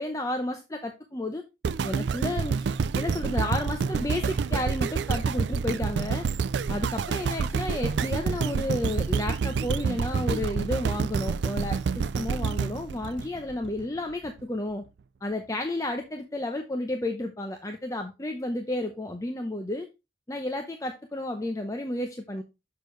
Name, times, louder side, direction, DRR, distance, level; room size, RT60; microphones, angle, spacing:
voice 1, 0.0-1.4 1.8-2.6 2.9-6.3 6.7-14.8 15.2-19.9 20.3-22.4, left 1 dB, 20° left, 0.7 m, -32 dB
sound 1, 1.6-13.8 14.4-14.5, right 5 dB, 75° right, 0.4 m, -28 dB
6.6 x 6.5 x 3.1 m
head